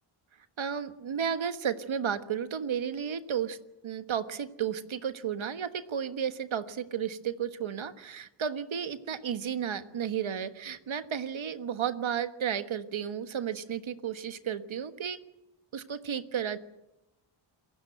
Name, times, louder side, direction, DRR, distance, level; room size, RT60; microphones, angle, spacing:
voice 1, 0.6-3.6 3.8-15.2 15.7-16.6, right 8 dB, 65° right, 10 dB, 1.5 m, -33 dB
28.5 x 16.0 x 7.9 m, 0.91 s
cardioid pair, 75°, 50 cm